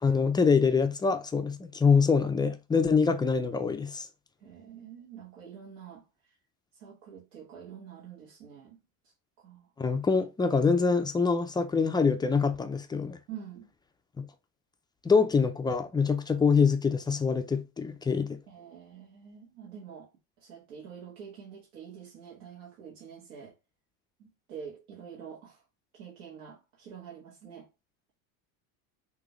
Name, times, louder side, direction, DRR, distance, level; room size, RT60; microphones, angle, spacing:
voice 1, 0.0-4.1 9.8-13.2 14.2-14.3 15.0-18.4, left 5 dB, 10° left, 0.3 m, -25 dB
voice 2, 4.4-6.0 6.8-8.8 9.4-9.7 13.3-13.7 18.5-20.1 20.4-23.5 24.2-25.6 25.9-27.7, right 7 dB, 85° right, 1.5 m, -46 dB
6.2 x 2.6 x 3.0 m
supercardioid pair, 115°, 43 cm